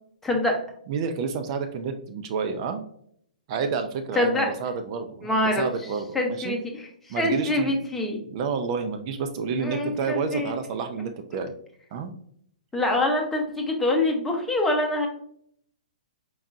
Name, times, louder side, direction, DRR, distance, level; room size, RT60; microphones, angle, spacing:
voice 1, 0.2-0.6 4.1-4.5 5.2-5.7 6.1-8.2 9.6-10.5 12.7-15.1, left 1 dB, 5° left, 0 dB, 0.9 m, -25 dB
voice 2, 0.9-2.8 3.5-6.6 7.1-7.7 8.3-11.5 11.9-12.1, right 5 dB, 40° right, 7 dB, 0.4 m, -29 dB
4.6 x 3.6 x 2.6 m, 0.67 s
hypercardioid pair, 130°, 5 cm